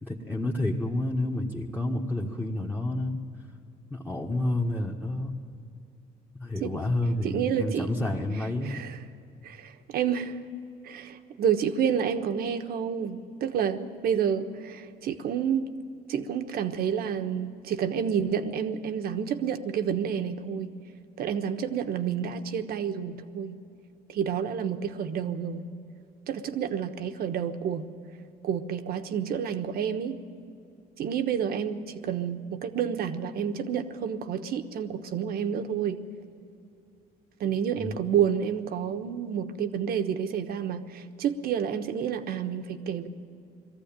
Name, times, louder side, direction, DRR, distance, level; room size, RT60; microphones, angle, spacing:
voice 1, 0.0-3.2 3.9-5.3 6.4-8.8 37.8-38.0, left 1 dB, 10° left, -3 dB, 1.5 m, -29 dB
voice 2, 7.2-7.9 8.6-9.0 9.4-10.4 10.8-15.7 16.1-20.7 21.2-23.6 24.1-25.6 26.3-27.9 28.4-30.2 31.0-36.0 37.4-43.1, right 8 dB, 65° right, 8 dB, 1.2 m, -29 dB
20.0 x 14.5 x 9.0 m, 2.7 s
cardioid pair, 110°, 17 cm